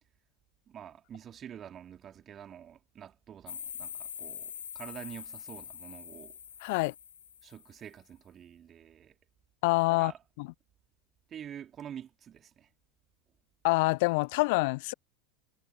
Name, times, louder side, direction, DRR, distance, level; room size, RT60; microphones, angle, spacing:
voice 1, 0.7-6.4 7.4-9.2 9.9-10.2 11.3-12.7, right 9 dB, 30° right, 2.3 m, -47 dB
sound 1, 3.5-7.9, left 8 dB, 70° left, 2.9 m, -44 dB
voice 2, 6.6-6.9 9.6-10.1 10.4-10.5 13.6-14.9, left 26 dB, 55° left, 0.4 m, -26 dB
figure-of-eight pair, 75°, 0 cm